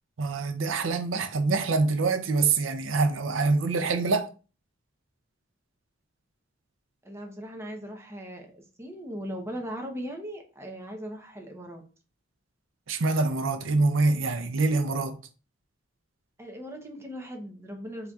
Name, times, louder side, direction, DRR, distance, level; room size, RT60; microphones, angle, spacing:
voice 1, 0.2-4.3 12.9-15.2, right 3 dB, 85° right, 0.6 m, -25 dB
voice 2, 7.0-11.8 16.4-18.1, equal, 15° right, 0.8 m, -39 dB
4.3 x 3.8 x 2.3 m
head